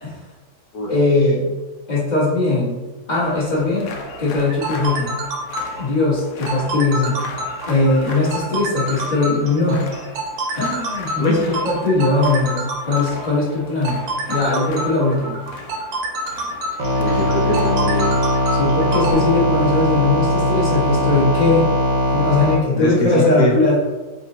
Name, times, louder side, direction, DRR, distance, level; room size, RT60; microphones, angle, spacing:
voice 1, 0.9-1.5 1.9-3.9 4.2-5.2 5.8-7.2 7.7-9.9 10.5-11.4 11.6-15.4 18.6-21.7 22.1-23.8, left 2 dB, 25° left, -8 dB, 1.3 m, -19 dB
sound 1, 3.2-18.0, left 3 dB, 85° left, 0.7 m, -38 dB
sound 2, 4.4-19.1, right 2 dB, 70° right, 1.3 m, -27 dB
sound 3, 16.8-22.6, equal, 55° right, 1.0 m, -19 dB
voice 2, 17.0-18.2 22.7-23.6, left 1 dB, 70° left, -1 dB, 1.1 m, -22 dB
3.9 x 2.6 x 4.1 m, 1.2 s
omnidirectional pair, 2.1 m